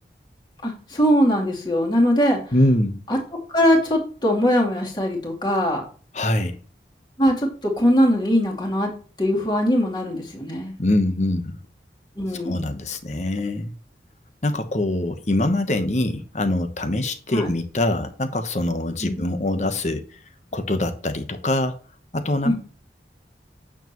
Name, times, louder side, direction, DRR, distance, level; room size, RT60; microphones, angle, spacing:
voice 1, 0.6-2.4 3.1-3.2 3.5-5.8 7.2-8.9 9.2-10.7 12.2-12.8 17.3-17.5 19.0-19.3 22.4-22.5, equal, 25° left, 2.6 m, -21 dB
voice 2, 2.5-3.0 6.1-6.6 10.8-11.6 12.3-13.7 14.4-20.0 20.5-21.8 22.1-22.5, left 1 dB, 40° left, 1.0 m, -23 dB
8.9 x 7.1 x 3.0 m
head